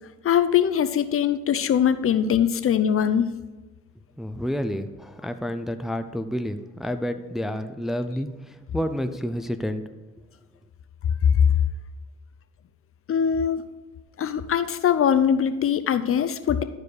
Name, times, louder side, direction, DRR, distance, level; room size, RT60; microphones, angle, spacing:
voice 1, 0.2-3.3 13.1-13.7 14.2-16.6, left 8 dB, 45° left, 11 dB, 0.6 m, -22 dB
voice 2, 4.2-9.8, equal, ahead, 8 dB, 0.5 m, -29 dB
11.5 x 4.7 x 4.8 m, 1.2 s
cardioid pair, 90°, 30 cm